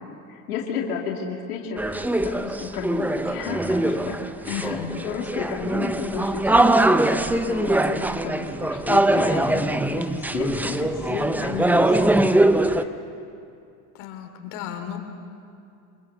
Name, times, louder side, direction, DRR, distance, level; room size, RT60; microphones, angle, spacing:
voice 1, 0.0-4.2 4.4-12.5 12.8-12.9, left 6 dB, 85° left, -1 dB, 2.6 m, -32 dB
sound 1, 1.8-12.8, right 1 dB, 5° right, 0.6 m, -22 dB
voice 2, 4.5-4.9 13.9-15.0, left 9 dB, 65° left, 4 dB, 2.9 m, -33 dB
25.5 x 21.0 x 6.8 m, 2.5 s
supercardioid pair, 110°, 44 cm